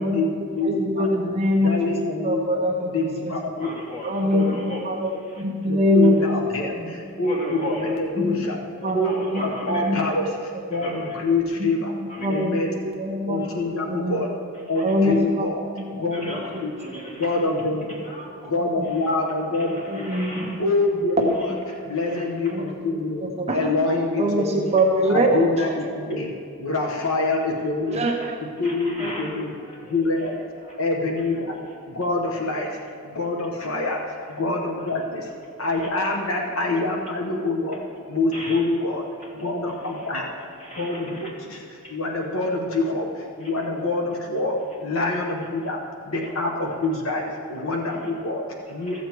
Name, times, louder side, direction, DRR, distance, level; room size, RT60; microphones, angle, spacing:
voice 1, 0.0-1.2 1.6-2.6 2.9-3.7 4.3-4.5 5.6-8.6 8.9-11.9 12.3-12.7 13.3-14.3 14.7-15.6 15.9-16.7 17.2-18.0 18.4-20.1 20.6-21.4 21.8-23.3 23.5-24.7 25.1-26.3 26.6-28.0 28.6-29.5 29.9-30.4 30.8-31.6 31.9-32.8 33.0-35.3 35.6-37.8 38.1-39.1 39.3-40.3 40.7-49.0, left 2 dB, 70° left, 1 dB, 1.1 m, -26 dB
voice 2, 0.6-1.7 2.2-2.9 3.2-3.3 4.0-6.2 6.8-6.9 8.2-8.4 8.8-9.4 9.7-10.0 11.6-11.7 12.2-12.5 12.8-13.4 13.9-14.2 14.8-15.5 15.9-16.0 16.5-16.6 18.6-18.9 19.9-20.6 21.5-21.6 22.5-22.7 23.4-23.7 24.2-25.3 27.9-28.2 29.0-29.3, equal, 30° right, 1 dB, 0.9 m, -23 dB
voice 3, 3.6-4.8 5.3-5.4 7.2-7.9 8.8-9.9 10.7-11.2 12.1-12.4 13.4-13.5 14.7-15.0 16.1-17.3 18.0-18.5 19.5-20.6 22.1-22.2 27.9-28.3 28.6-30.0 30.2-30.4 30.6-30.7 35.7-35.9 37.6-37.7 38.3-38.6 39.4-39.5 40.6-41.3 41.8-41.9 43.4-43.5 48.8-49.0, equal, 30° left, -7 dB, 3.0 m, -36 dB
14.5 x 7.4 x 4.6 m, 2.4 s
head